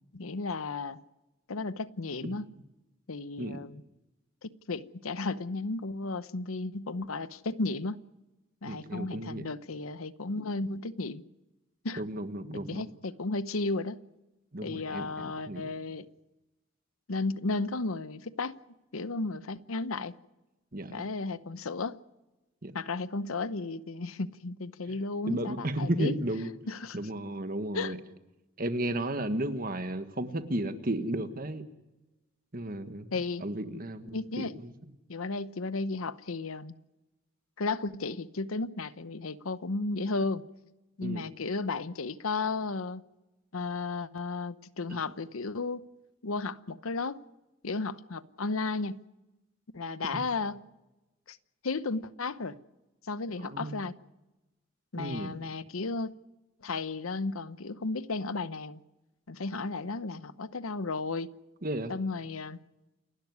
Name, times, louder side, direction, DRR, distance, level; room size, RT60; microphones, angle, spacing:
voice 1, 0.1-1.0 1.5-2.5 3.1-3.8 4.4-8.0 8.6-11.2 11.8-12.0 12.5-14.0 14.6-16.1 17.1-18.6 18.9-20.1 20.9-22.0 22.7-26.1 26.7-27.0 27.7-27.9 33.1-33.5 34.1-34.5 35.1-36.7 37.6-40.4 41.0-43.0 43.5-45.9 46.2-47.2 47.6-49.0 49.7-50.6 51.3-51.4 51.6-52.6 53.1-53.9 54.9-56.1 56.6-58.8 59.3-61.3 61.9-62.6, left 3 dB, 85° left, 15 dB, 0.9 m, -34 dB
voice 2, 8.7-9.4 12.0-12.9 14.5-15.7 20.7-20.9 22.6-22.7 25.2-26.5 26.9-28.0 28.6-31.6 32.5-33.1 33.4-34.7 41.0-41.2 44.9-45.0 50.1-50.2 53.4-53.7 55.0-55.3 61.6-61.9, right 1 dB, 45° right, 10 dB, 1.5 m, -34 dB
29.0 x 12.0 x 9.6 m, 1.0 s
head